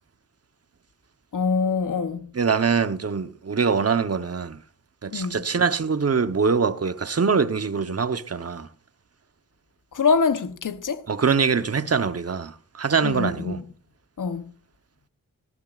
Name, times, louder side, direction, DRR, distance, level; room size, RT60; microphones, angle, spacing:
voice 1, 1.3-2.3 5.1-5.4 9.9-11.0 13.0-13.5 14.2-14.4, left 5 dB, 70° left, 1.0 m, -24 dB
voice 2, 2.3-4.6 5.0-8.7 11.1-13.6, right 5 dB, 45° right, 1.0 m, -23 dB
18.5 x 14.0 x 2.5 m
wide cardioid pair, 70°, 33 cm